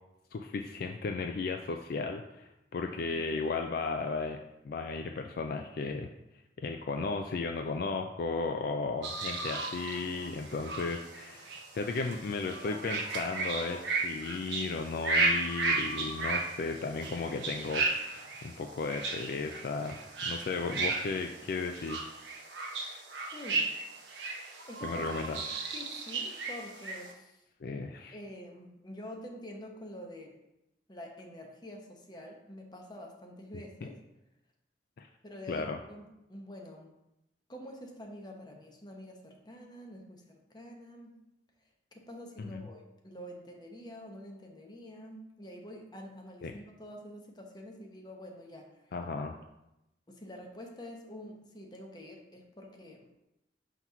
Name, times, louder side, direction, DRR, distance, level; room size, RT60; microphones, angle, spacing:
voice 1, 0.3-4.4 4.6-6.1 6.6-22.0 24.8-25.4 27.6-28.2 35.0-35.1 35.5-35.8 42.4-42.7 46.4-46.5 48.9-49.3, left 4 dB, 55° left, 5 dB, 0.3 m, -35 dB
sound 1, 9.0-27.1, right 3 dB, 85° right, 0.9 m, -34 dB
voice 2, 23.3-23.7 24.7-25.0 25.4-25.5 25.7-27.4 28.1-30.4 30.9-34.0 35.2-36.9 37.5-41.2 41.9-48.9 50.1-53.1, left 1 dB, 25° left, 1 dB, 0.9 m, -47 dB
5.8 x 3.0 x 5.6 m, 0.90 s
head